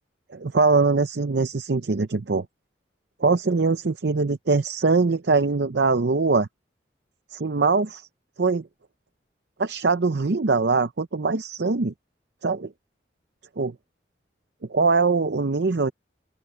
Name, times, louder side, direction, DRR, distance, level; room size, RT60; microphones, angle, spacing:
voice 1, 0.3-2.5 3.2-6.5 7.3-8.1 8.4-8.7 9.6-11.9 12.4-12.7 13.6-13.7 14.7-15.9, right 4 dB, 65° right, 0.6 m, -22 dB
open air
head